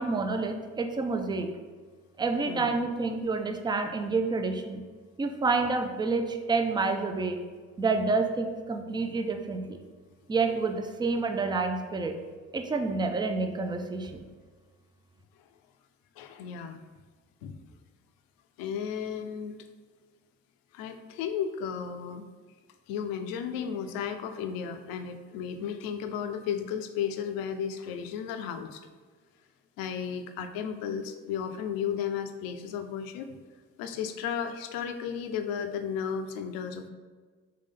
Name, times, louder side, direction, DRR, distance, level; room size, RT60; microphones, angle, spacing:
voice 1, 0.0-1.5 2.2-4.8 5.2-7.4 7.8-9.8 10.3-12.2 12.5-14.3, right 3 dB, 10° right, 6 dB, 0.4 m, -28 dB
voice 2, 16.2-16.8 17.4-17.5 18.6-19.6 20.7-22.2 22.9-28.8 29.8-33.4 33.8-36.9, left 7 dB, 60° left, 8 dB, 0.5 m, -34 dB
3.8 x 3.2 x 3.7 m, 1.5 s
figure-of-eight pair, 50°, 41 cm